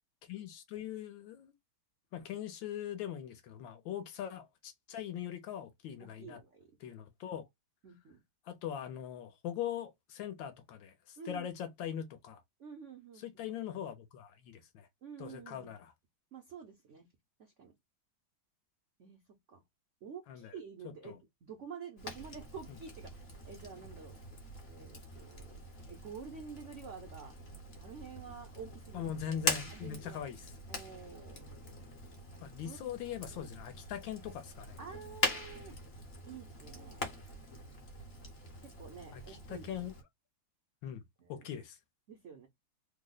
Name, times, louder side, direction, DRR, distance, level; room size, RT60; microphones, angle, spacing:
voice 1, 0.2-1.5 2.1-6.4 6.8-7.5 8.5-12.4 13.2-14.9 15.2-15.9 20.3-20.5 21.0-21.1 28.9-30.5 32.4-34.8 39.1-39.9 40.8-41.0 41.3-41.8, left 9 dB, 75° left, 1.3 m, -41 dB
voice 2, 6.0-6.7 7.8-8.2 11.2-11.5 12.6-13.2 15.0-15.7 16.3-17.1 17.4-17.7 19.0-19.6 20.0-24.2 24.7-25.6 25.9-27.3 27.8-29.1 29.7-30.2 30.7-31.6 32.6-32.8 33.3-33.5 34.8-35.8 36.3-37.1 38.6-39.7 41.2-41.5 42.1-42.5, right 6 dB, 70° right, 0.7 m, -49 dB
Fire, 22.0-40.0, left 2 dB, 45° left, 0.8 m, -42 dB
3.3 x 2.1 x 3.7 m
omnidirectional pair, 2.3 m